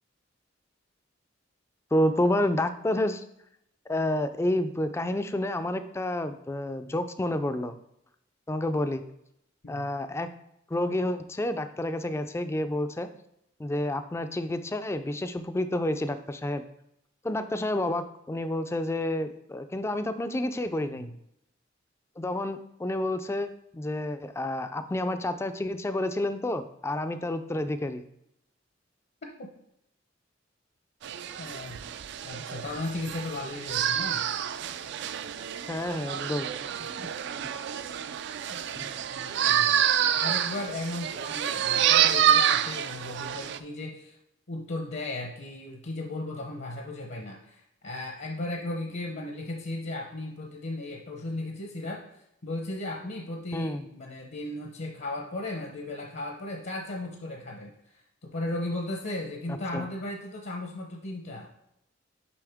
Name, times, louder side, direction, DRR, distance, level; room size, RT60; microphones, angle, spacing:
voice 1, 1.9-3.2 3.9-7.8 8.5-9.0 9.7-10.3 10.7-13.1 13.6-16.6 17.2-21.1 22.2-28.0 35.7-36.6 38.7-38.9 53.5-53.9 59.5-59.9, left 1 dB, 15° left, 9 dB, 0.3 m, -29 dB
sound 1, 31.0-43.6, right 9 dB, 60° right, 0.3 m, -28 dB
voice 2, 31.4-31.8 32.2-34.2 37.0-37.3 38.5-38.6 39.1-39.7 40.2-44.2 44.5-52.0 52.4-61.5, left 2 dB, 60° left, 1 dB, 0.8 m, -36 dB
7.0 x 5.1 x 3.5 m, 0.78 s
head